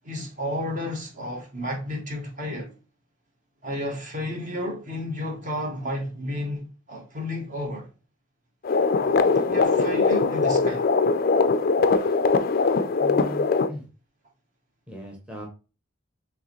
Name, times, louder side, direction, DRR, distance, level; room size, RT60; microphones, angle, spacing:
voice 1, 0.0-2.7 3.6-7.9 9.0-10.9, left 1 dB, 40° right, 1.1 m, -32 dB
sound 1, 8.6-13.7, left 4 dB, 45° left, 0.4 m, -21 dB
voice 2, 13.0-13.9 14.9-15.5, left 1 dB, 5° right, 0.9 m, -38 dB
4.6 x 3.4 x 3.0 m
head